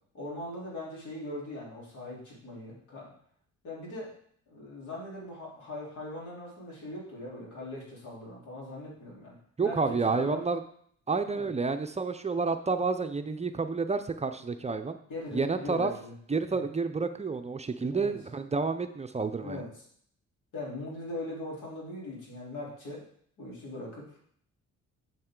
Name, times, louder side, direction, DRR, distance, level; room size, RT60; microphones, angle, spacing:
voice 1, 0.1-3.1 3.6-4.1 4.5-10.4 11.3-11.5 15.1-16.1 17.9-18.1 19.4-19.7 20.5-23.1 23.4-24.2, left 1 dB, 80° left, -4 dB, 3.6 m, -40 dB
voice 2, 9.6-10.6 11.1-15.0 15.3-15.9 16.3-19.6, right 4 dB, 20° right, 8 dB, 0.6 m, -30 dB
7.6 x 7.3 x 3.8 m, 0.63 s
cardioid pair, 90°, 30 cm